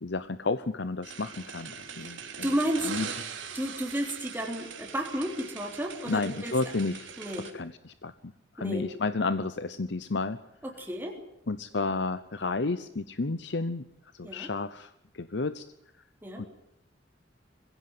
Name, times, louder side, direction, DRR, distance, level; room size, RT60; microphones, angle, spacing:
voice 1, 0.0-2.5 2.9-3.1 6.1-7.1 7.5-8.1 8.6-10.4 11.5-13.8 14.1-15.6 16.4-16.5, left 3 dB, 65° left, 13 dB, 0.8 m, -31 dB
sound 1, 1.0-7.5, right 6 dB, 85° right, 3.6 m, -41 dB
voice 2, 2.4-2.9 3.5-6.5 7.2-7.5 8.6-8.8 10.6-11.1 14.2-14.5 16.2-16.4, equal, 10° right, 0 dB, 3.3 m, -32 dB
21.5 x 16.5 x 9.5 m, 0.78 s
head